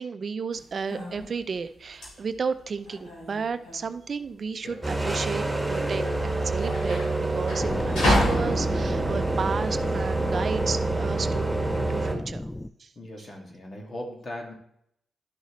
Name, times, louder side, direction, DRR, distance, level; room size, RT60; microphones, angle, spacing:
voice 1, 0.0-12.5 12.8-12.9, right 5 dB, 55° right, 11 dB, 0.5 m, -33 dB
sound 1, 0.5-10.6, left 1 dB, 80° left, 3.2 m, -31 dB
sound 2, 4.8-12.1, right 3 dB, 10° right, 2.0 m, -27 dB
sound 3, 7.6-12.7, left 1 dB, 15° left, 0.4 m, -32 dB
voice 2, 13.0-14.5, left 1 dB, 50° left, 1 dB, 2.2 m, -38 dB
11.0 x 6.4 x 3.1 m, 0.75 s
supercardioid pair, 45°, 0 cm